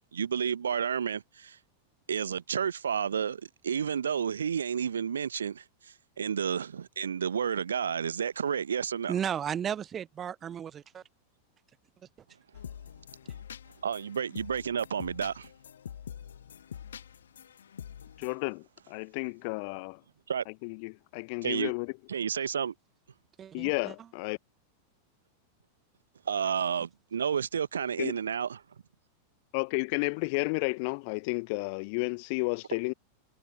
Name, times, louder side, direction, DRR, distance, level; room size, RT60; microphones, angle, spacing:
voice 1, 0.1-1.6 2.1-9.1 13.8-15.5 20.3-20.4 21.4-21.7 22.1-22.7 26.2-28.6, right 7 dB, 70° right, 1.2 m, -31 dB
voice 2, 9.1-11.0 23.4-23.9, right 8 dB, 25° right, 0.8 m, -34 dB
sound 1, 12.5-18.3, left 8 dB, 65° left, 1.3 m, -45 dB
voice 3, 18.2-20.0 20.6-21.9 23.5-24.4 28.0-28.1 29.5-32.9, left 33 dB, 45° left, 1.0 m, -32 dB
figure-of-eight pair, 90°, 0 cm